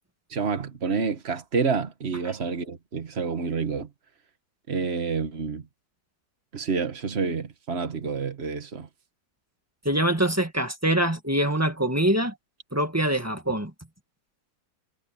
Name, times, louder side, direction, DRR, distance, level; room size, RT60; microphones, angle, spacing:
voice 1, 0.3-3.9 4.7-5.7 6.5-8.9, right 5 dB, 40° right, 1.8 m, -28 dB
voice 2, 9.8-12.3 12.7-13.7, right 1 dB, 10° right, 1.8 m, -24 dB
omnidirectional pair, 1.7 m